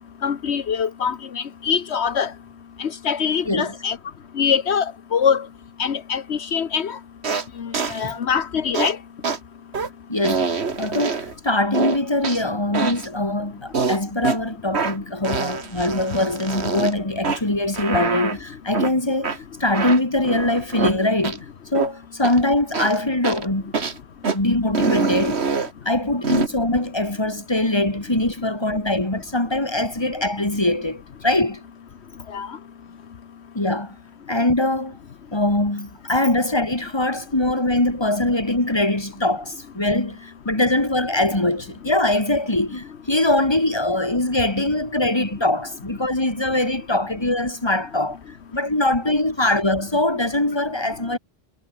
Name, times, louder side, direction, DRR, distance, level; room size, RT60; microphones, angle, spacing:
voice 1, 0.2-2.3 2.8-4.0 4.3-5.5 5.8-7.0 7.6-9.0 32.3-32.6, left 7 dB, 80° left, 1.3 m, -23 dB
sound 1, 7.2-7.5 7.7-8.0 8.7-8.9 9.2-9.4 9.7-9.9 10.2-11.3 11.7-12.4 12.7-13.1 13.7-14.4 14.7-15.0 15.2-16.9 17.2-17.4 17.7-18.4 18.7-18.9 19.2-19.4 19.7-20.9 21.2-21.4 21.7-21.9 22.2-22.4 22.7-23.0 23.2-23.5 23.7-24.0 24.2-24.4 24.7-25.7 26.2-26.5, right 5 dB, 75° right, 2.0 m, -25 dB
voice 2, 10.1-21.4 21.7-23.8 24.3-25.4 25.8-31.6 33.5-34.0 34.3-35.0 35.3-48.2 48.5-51.2, left 1 dB, 25° left, 3.1 m, -22 dB
omnidirectional pair, 1.1 m